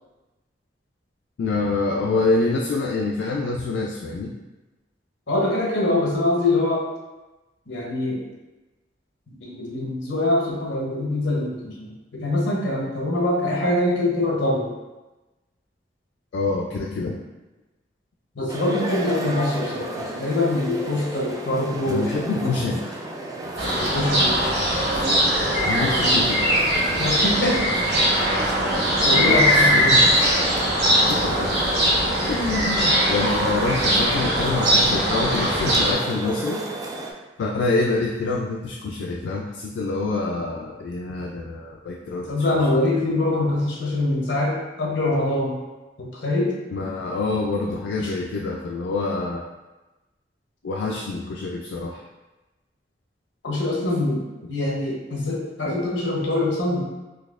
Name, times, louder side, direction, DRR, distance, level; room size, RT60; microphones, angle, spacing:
voice 1, 1.4-4.3 16.3-17.2 21.9-23.0 23.4-23.5 25.6-26.5 29.0-29.4 29.7-30.1 31.1-31.5 32.3-36.6 37.4-42.3 42.9-43.0 46.7-49.4 50.6-52.0, left 3 dB, 75° left, -1 dB, 0.3 m, -26 dB
voice 2, 5.3-6.9 7.7-8.2 9.3-14.7 18.4-22.7 23.7-24.4 25.8-26.3 27.0-27.6 28.3-28.6 29.1-30.0 42.3-45.6 46.0-46.5 48.0-48.1 53.4-54.2 54.5-56.8, left 2 dB, 90° left, -2 dB, 0.8 m, -24 dB
sound 1, 18.5-37.1, right 1 dB, 20° right, 0.3 m, -33 dB
sound 2, 23.6-35.9, equal, 70° right, 1.3 m, -20 dB
4.0 x 2.6 x 2.4 m, 1.1 s
head